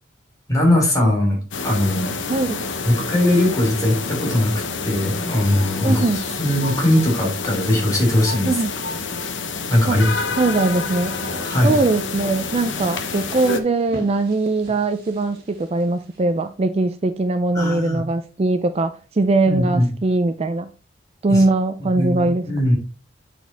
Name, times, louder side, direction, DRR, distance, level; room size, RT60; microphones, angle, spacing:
voice 1, 0.5-2.1 2.8-4.5 4.8-6.0 6.4-8.6 9.7-10.1 11.4-11.7 17.5-18.0 19.5-19.9 21.3-21.4 21.8-22.8, left 1 dB, 20° left, 3.1 m, -19 dB
sound 1, 1.5-13.6, left 4 dB, 75° left, 0.9 m, -28 dB
voice 2, 5.8-6.2 8.4-8.7 9.8-10.0 10.4-11.2 11.6-20.7 21.2-22.5, right 2 dB, 35° right, 0.4 m, -21 dB
sound 2, 10.1-16.2, right 1 dB, 55° right, 2.5 m, -40 dB
8.4 x 4.4 x 3.4 m
head